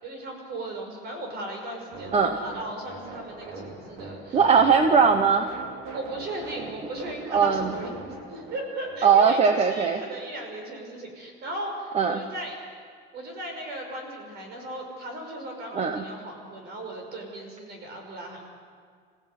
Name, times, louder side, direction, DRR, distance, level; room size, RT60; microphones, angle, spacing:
voice 1, 0.0-4.4 5.9-12.6 13.1-18.5, right 1 dB, 50° right, 2 dB, 5.7 m, -37 dB
sound 1, 1.9-9.4, right 3 dB, 85° right, 3.9 m, -40 dB
voice 2, 4.3-5.5 7.3-7.7 9.0-10.0 11.9-12.2 15.7-16.0, right 6 dB, 30° right, 7 dB, 0.9 m, -20 dB
27.5 x 16.0 x 8.2 m, 2.1 s
cardioid pair, 170°, 21 cm